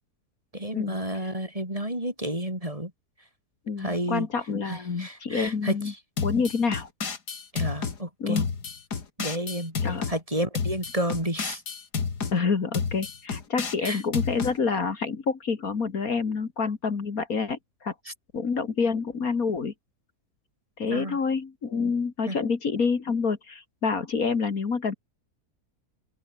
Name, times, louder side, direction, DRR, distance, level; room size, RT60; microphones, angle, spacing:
voice 1, 0.5-2.9 3.8-4.3 4.6-6.0 7.5-8.5 9.2-9.7 10.1-11.6 13.8-14.0 18.1-18.2 20.9-21.2 22.3-22.4, right 1 dB, 20° right, 6.4 m, -31 dB
voice 2, 3.7-5.9 6.2-6.9 8.2-8.4 9.8-10.0 12.3-17.9 18.3-19.7 20.8-24.9, left 5 dB, 60° left, 2.5 m, -27 dB
sound 1, 6.2-8.0 8.4-10.2 10.5-12.4 12.7-14.5, left 5 dB, 80° left, 2.8 m, -30 dB
open air
omnidirectional pair, 1.7 m